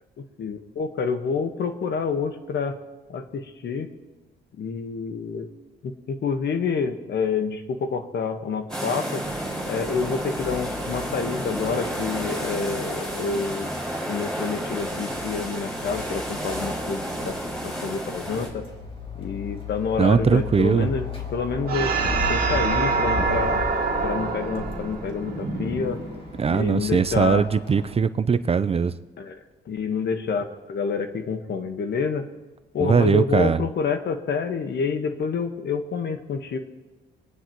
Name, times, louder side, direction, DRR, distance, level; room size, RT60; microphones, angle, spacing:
voice 1, 0.2-2.8 3.1-3.9 4.6-5.5 5.8-9.2 9.7-13.7 14.1-18.6 19.2-21.0 21.3-21.9 22.3-23.6 24.0-26.0 26.5-27.4 29.2-29.4 29.7-32.2 32.7-36.6, left 5 dB, 60° left, 7 dB, 1.4 m, -28 dB
sound 1, 8.7-18.5, equal, 5° left, 4.9 m, -31 dB
sound 2, 9.2-28.0, left 1 dB, 25° left, 2.4 m, -36 dB
voice 2, 20.0-20.9 26.4-28.9 32.8-33.6, right 6 dB, 30° right, 13 dB, 0.5 m, -20 dB
sound 3, 21.7-26.5, right 4 dB, 50° right, 2.1 m, -26 dB
24.5 x 9.7 x 3.0 m, 1.2 s
cardioid pair, 90°, 20 cm